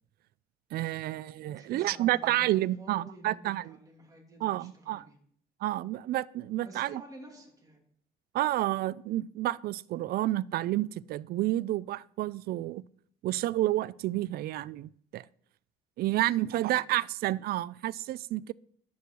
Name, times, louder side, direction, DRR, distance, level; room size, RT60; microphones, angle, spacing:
voice 1, 0.7-3.7 4.4-5.0 5.6-7.0 8.3-12.8 13.2-15.2 16.0-18.5, right 15 dB, 65° right, 0.4 m, -30 dB
voice 2, 1.5-5.2 6.6-7.8 16.4-16.8, right 1 dB, 20° right, 3.1 m, -51 dB
11.0 x 9.4 x 4.6 m
cardioid pair, 110°, 17 cm